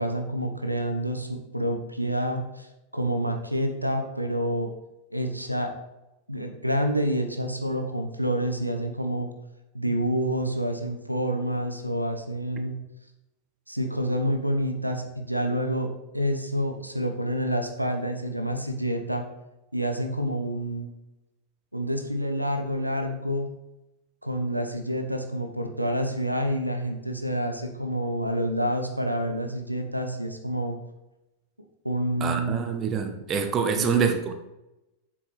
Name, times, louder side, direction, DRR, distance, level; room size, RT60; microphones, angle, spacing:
voice 1, 0.0-2.7 2.9-4.7 5.1-5.7 6.3-9.3 9.7-12.7 13.7-19.2 19.7-20.9 21.7-23.5 24.2-30.8 31.8-32.7 33.8-34.0, equal, 90° right, 5 dB, 0.9 m, -28 dB
voice 2, 32.2-34.3, right 6 dB, 30° right, 6 dB, 1.0 m, -25 dB
7.7 x 6.2 x 4.1 m, 0.95 s
figure-of-eight pair, 90°, 0 cm